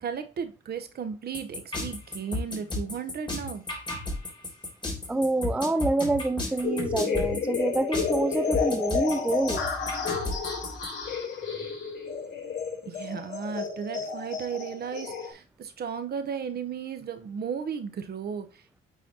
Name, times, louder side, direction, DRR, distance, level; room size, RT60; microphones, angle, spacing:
voice 1, 0.0-3.6 12.8-18.8, right 7 dB, 50° right, 1.0 m, -35 dB
sound 1, 1.3-10.9, left 2 dB, 25° left, 3.3 m, -33 dB
voice 2, 5.1-9.7, right 2 dB, 5° right, 0.4 m, -27 dB
sound 2, 6.6-15.3, left 5 dB, 60° left, 3.2 m, -31 dB
9.1 x 4.1 x 2.8 m
cardioid pair, 90°, 20 cm